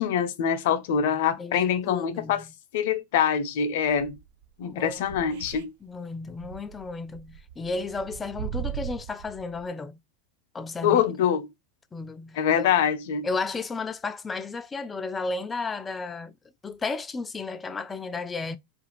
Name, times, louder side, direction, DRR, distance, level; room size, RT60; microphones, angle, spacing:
voice 1, 0.0-2.4 2.7-4.2 4.6-5.7 10.8-11.5 12.4-13.3, left 8 dB, 70° left, 0.5 m, -24 dB
voice 2, 1.4-2.5 4.6-5.3 5.8-10.0 10.5-11.0 11.9-12.7 13.2-16.3 16.6-18.6, left 3 dB, 15° left, 0.3 m, -33 dB
sound 1, 3.8-4.4 4.9-5.6 5.9-6.0 6.3-9.6, right 9 dB, 70° right, 0.3 m, -38 dB
2.4 x 2.4 x 2.9 m
supercardioid pair, 125°, 0 cm